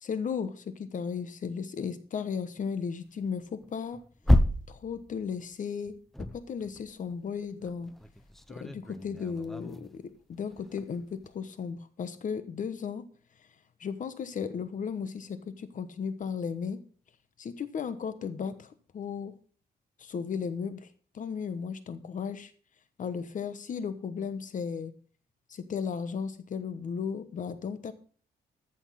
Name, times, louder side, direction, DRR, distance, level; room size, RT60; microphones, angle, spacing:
voice 1, 0.0-4.0 4.7-7.9 8.5-10.0 10.3-13.0 13.8-16.8 17.4-19.3 20.0-20.9 21.1-22.5 23.0-24.9 25.5-27.9, left 6 dB, 50° left, 12 dB, 1.1 m, -35 dB
sound 1, 3.2-5.5 5.9-7.2 7.6-10.0 10.4-11.3, left 1 dB, ahead, 0.7 m, -30 dB
14.5 x 6.4 x 6.3 m, 0.43 s
wide cardioid pair, 150°, 17 cm